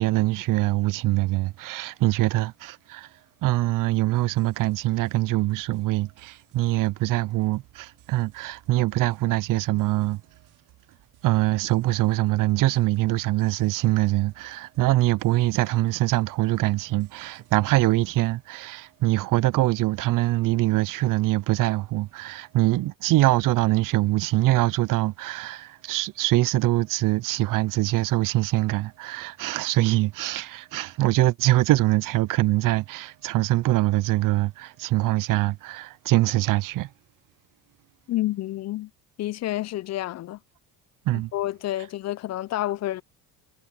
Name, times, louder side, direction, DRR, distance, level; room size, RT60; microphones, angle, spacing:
voice 1, 0.0-3.1 3.4-10.2 11.2-36.9 41.1-41.3, right 17 dB, 55° right, 0.6 m, -23 dB
sound 1, 3.9-18.4, right 17 dB, 80° right, 4.2 m, -59 dB
voice 2, 38.1-38.9 39.2-40.4 41.3-43.0, left 14 dB, 45° left, 0.5 m, -29 dB
cardioid pair, 105°, 38 cm